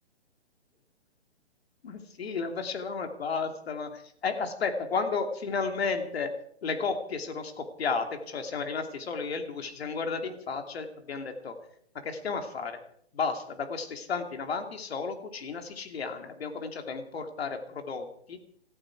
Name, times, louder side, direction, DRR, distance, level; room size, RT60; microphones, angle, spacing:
voice 1, 1.8-6.3 6.6-11.5 12.0-12.8 13.1-18.4, left 5 dB, 60° left, 6 dB, 2.8 m, -33 dB
18.0 x 14.5 x 4.8 m, 0.65 s
hypercardioid pair, 155°, 34 cm